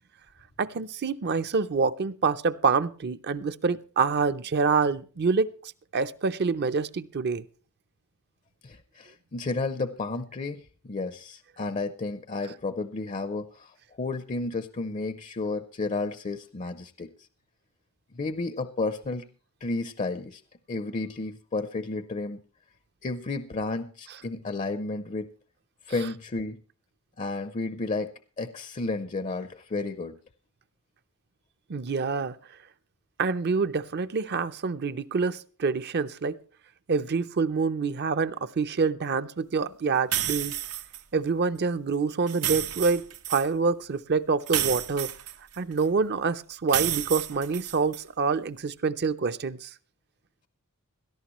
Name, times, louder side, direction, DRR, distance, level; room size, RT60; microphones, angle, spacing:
voice 1, 0.6-5.5 5.9-7.4 31.7-32.3 33.2-36.4 36.9-40.5 41.1-43.0 43.3-45.1 45.6-49.7, right 4 dB, 45° right, 13 dB, 0.5 m, -26 dB
voice 2, 8.6-17.1 18.1-19.3 19.6-20.4 20.7-22.4 23.0-25.3 25.9-26.6 27.2-30.2, left 3 dB, 30° left, 12 dB, 0.5 m, -32 dB
sound 1, 40.1-41.0 42.3-43.5 44.5-45.8 46.7-48.0, right 12 dB, 85° right, 0.8 m, -30 dB
17.0 x 13.0 x 3.0 m, 0.39 s
head